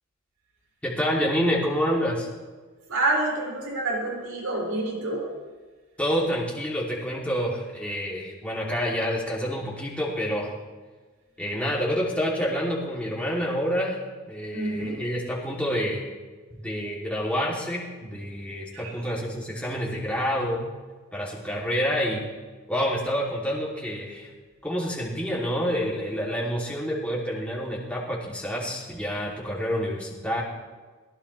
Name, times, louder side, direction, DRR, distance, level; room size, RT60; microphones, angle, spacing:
voice 1, 0.8-2.3 6.0-10.5 11.4-14.0 14.3-16.0 16.6-20.6 21.1-22.2 22.7-24.3 24.6-30.4, equal, 5° left, -5 dB, 3.1 m, -28 dB
voice 2, 2.9-5.3 14.5-15.0 18.7-18.9, right 2 dB, 85° right, -3 dB, 6.3 m, -27 dB
22.5 x 17.5 x 3.4 m, 1.4 s
head